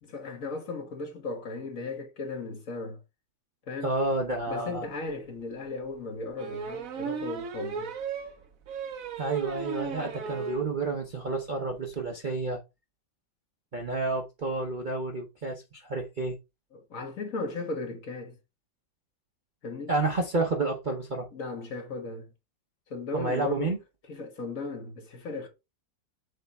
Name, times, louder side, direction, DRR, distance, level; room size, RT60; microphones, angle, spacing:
voice 1, 0.0-3.0 3.7-3.9 4.5-7.9 16.7-18.4 19.6-19.9 21.3-22.3 22.9-23.7 24.1-25.5, left 3 dB, 50° left, 1.5 m, -36 dB
voice 2, 3.8-4.9 9.2-12.6 13.7-16.4 19.9-21.3 23.1-23.8, right 3 dB, 40° right, 0.7 m, -30 dB
sound 1, 5.1-5.2 6.4-10.7 11.0-11.1 11.4-11.5 11.7-11.9, right 6 dB, 55° right, 1.1 m, -36 dB
6.8 x 3.4 x 4.2 m
omnidirectional pair, 2.0 m